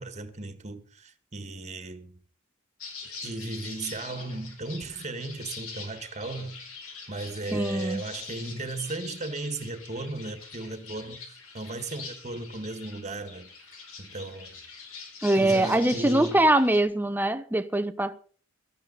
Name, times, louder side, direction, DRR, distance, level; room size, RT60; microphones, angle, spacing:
voice 1, 0.0-2.2 3.2-6.5 7.1-13.5 14.0-14.6 15.3-16.5, right 2 dB, 35° right, 1.7 m, -36 dB
sound 1, 2.8-16.8, left 5 dB, 80° left, 4.7 m, -44 dB
voice 2, 7.5-8.0 15.2-18.2, right 1 dB, 10° right, 0.9 m, -23 dB
18.0 x 13.5 x 4.1 m
head